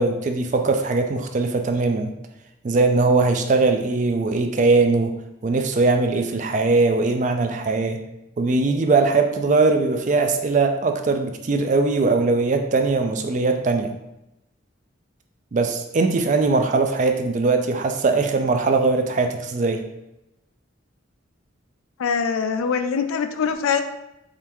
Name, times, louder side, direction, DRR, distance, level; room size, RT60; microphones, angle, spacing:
voice 1, 0.0-2.1 2.6-5.1 5.4-8.0 8.4-13.9 15.5-19.8, right 3 dB, 35° right, 6 dB, 0.3 m, -20 dB
voice 2, 22.0-23.8, left 6 dB, 85° left, 7 dB, 0.4 m, -23 dB
3.7 x 3.3 x 2.9 m, 0.90 s
head